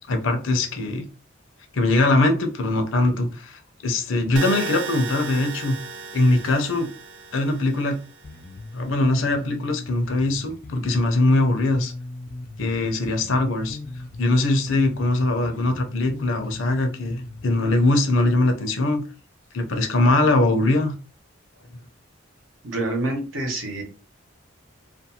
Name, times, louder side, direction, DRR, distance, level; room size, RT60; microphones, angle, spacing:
voice 1, 0.1-1.1 1.7-5.7 6.1-6.9 7.3-8.0 8.7-11.9 12.6-13.8 14.2-19.0 19.5-20.9, left 2 dB, 85° left, 5 dB, 0.6 m, -21 dB
sound 1, 4.4-8.4, right 4 dB, 65° right, 0.4 m, -35 dB
Bass guitar, 8.2-17.8, left 2 dB, 45° left, 0.3 m, -38 dB
voice 2, 22.6-23.8, right 2 dB, 85° right, 1 dB, 1.0 m, -27 dB
2.5 x 2.3 x 2.8 m, 0.35 s
head